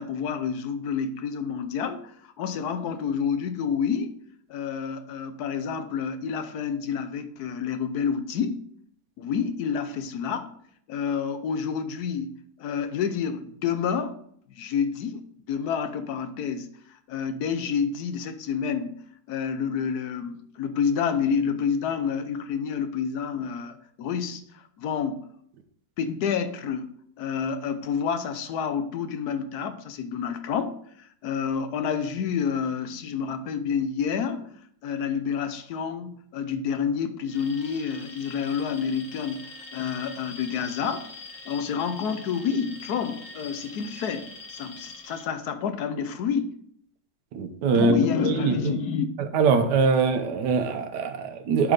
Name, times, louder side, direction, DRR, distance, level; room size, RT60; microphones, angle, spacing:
voice 1, 0.0-4.1 4.5-8.6 9.2-10.5 10.9-14.2 14.5-19.0 19.3-25.3 26.0-34.5 34.8-41.1 41.4-46.6 47.6-49.1, left 7 dB, 75° left, 9 dB, 1.2 m, -29 dB
Alarm, 37.2-45.3, left 3 dB, 50° left, 1.9 m, -43 dB
voice 2, 47.3-48.0 48.2-48.8 49.3-51.7, right 5 dB, 85° right, 8 dB, 1.5 m, -23 dB
11.0 x 4.4 x 3.9 m, 0.66 s
omnidirectional pair, 1.8 m